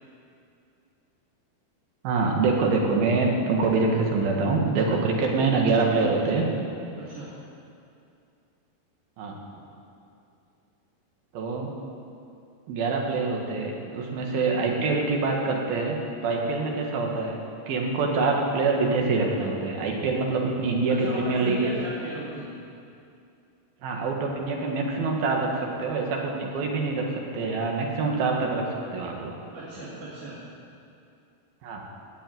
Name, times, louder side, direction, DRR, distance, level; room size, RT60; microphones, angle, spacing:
voice 1, 2.0-6.5 9.2-9.3 11.3-11.7 12.7-16.0 16.2-17.4 17.7-21.7 23.8-27.0 27.3-29.3 31.6-31.8, right 3 dB, 75° right, 0 dB, 3.5 m, -25 dB
voice 2, 7.0-7.3 20.9-22.5 29.5-30.4, right 1 dB, 55° right, -10 dB, 3.7 m, -37 dB
17.5 x 6.9 x 9.2 m, 2.5 s
omnidirectional pair, 4.4 m